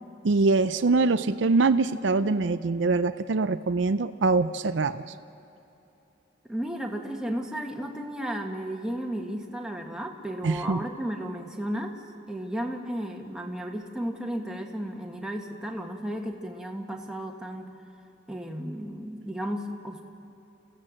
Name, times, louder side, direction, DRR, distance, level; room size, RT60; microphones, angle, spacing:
voice 1, 0.2-5.1 10.4-10.8, right 3 dB, 75° right, 11 dB, 0.5 m, -23 dB
voice 2, 6.5-12.0 12.3-17.7 18.3-20.0, equal, 5° right, 1 dB, 1.5 m, -34 dB
29.0 x 15.5 x 7.7 m, 2.9 s
head